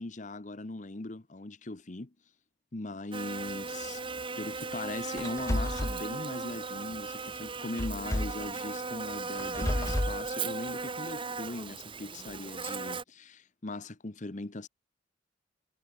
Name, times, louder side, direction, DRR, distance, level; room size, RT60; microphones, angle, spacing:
voice 1, 0.0-2.1 2.7-4.0 4.4-14.7, left 2 dB, 40° left, 1.0 m, -40 dB
Buzz, 3.1-13.0, right 4 dB, 30° right, 1.4 m, -37 dB
sound 1, 5.2-6.0 7.8-8.5 9.4-10.2, left 1 dB, 15° left, 0.7 m, -31 dB
head